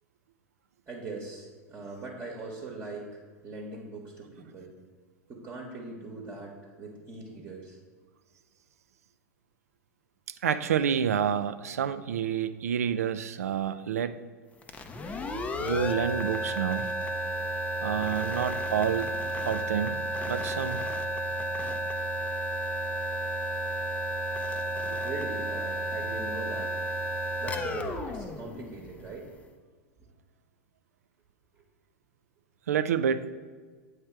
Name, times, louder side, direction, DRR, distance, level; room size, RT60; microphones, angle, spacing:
voice 1, 0.9-4.7 5.3-7.8 25.0-26.8 27.4-29.3 31.5-31.6, right 3 dB, 30° right, -2 dB, 1.1 m, -41 dB
voice 2, 10.4-14.2 15.6-16.9 17.8-19.1 19.5-20.9 32.7-33.2, right 8 dB, 70° right, 12 dB, 0.3 m, -28 dB
sound 1, 14.6-29.2, right 1 dB, 15° left, 0.5 m, -32 dB
8.1 x 3.3 x 4.4 m, 1.5 s
figure-of-eight pair, 85°, 8 cm